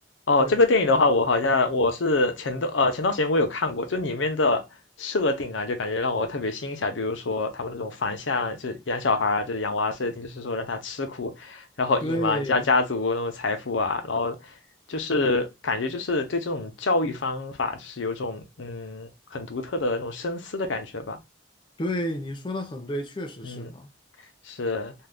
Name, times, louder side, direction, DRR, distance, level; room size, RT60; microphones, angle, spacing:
voice 1, 0.3-4.6 5.0-14.4 14.9-21.2 23.4-23.7 24.5-24.9, left 3 dB, 90° left, 0.7 m, -25 dB
voice 2, 12.0-12.7 21.8-23.9, equal, 25° left, 0.4 m, -31 dB
2.7 x 2.3 x 3.4 m
head